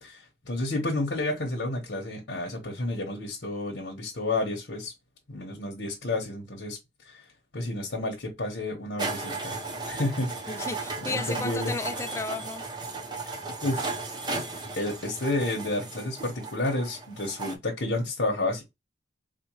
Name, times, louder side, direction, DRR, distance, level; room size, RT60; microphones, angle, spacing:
voice 1, 0.0-4.9 5.3-6.8 7.0-7.2 7.5-9.5 9.9-10.7 11.1-11.7 13.6-13.9 14.8-18.6, left 2 dB, 70° left, 1.1 m, -30 dB
sound 1, 9.0-17.6, right 3 dB, 25° right, 0.8 m, -35 dB
voice 2, 10.5-12.6, left 3 dB, 15° left, 0.4 m, -33 dB
4.3 x 2.2 x 3.0 m
head